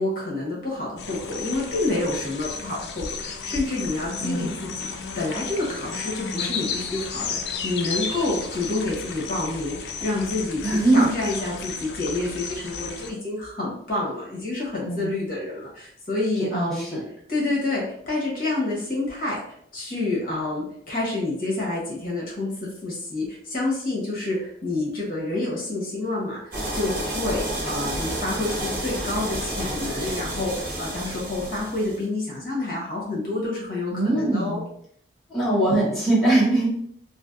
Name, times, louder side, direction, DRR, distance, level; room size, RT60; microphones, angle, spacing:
voice 1, 0.0-4.9 5.1-10.6 10.9-16.9 17.3-34.6, left 2 dB, 50° left, -4 dB, 1.1 m, -28 dB
sound 1, 1.0-13.1, left 5 dB, 65° left, 0.4 m, -33 dB
voice 2, 4.2-4.6 10.6-11.1 14.8-15.2 16.5-17.0 33.9-34.6 35.3-36.7, right 2 dB, ahead, -9 dB, 1.0 m, -22 dB
sound 2, 26.5-32.0, right 1 dB, 50° right, 1.0 m, -30 dB
3.3 x 2.5 x 2.5 m, 0.66 s
head